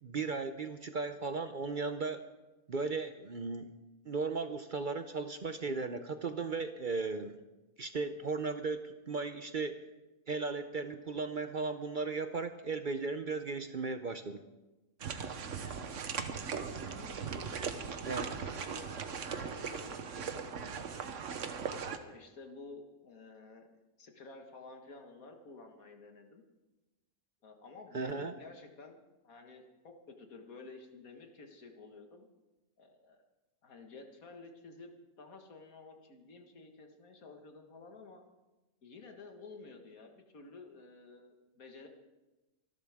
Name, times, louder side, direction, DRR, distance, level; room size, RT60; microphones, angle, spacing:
voice 1, 0.0-2.2 2.7-3.7 4.1-7.3 7.8-9.8 10.3-14.4 18.0-18.3 27.9-28.3, right 4 dB, 45° right, 9 dB, 0.7 m, -36 dB
sound 1, 15.0-22.0, right 6 dB, 65° right, 1.3 m, -39 dB
voice 2, 15.6-16.0 16.7-17.5 17.8-21.1 21.9-23.7 24.0-26.4 27.4-32.3 32.8-33.2 33.6-34.9 35.2-38.2 38.8-41.9, left 3 dB, 90° left, 4 dB, 2.1 m, -52 dB
26.0 x 12.0 x 3.6 m, 1.1 s
omnidirectional pair, 1.4 m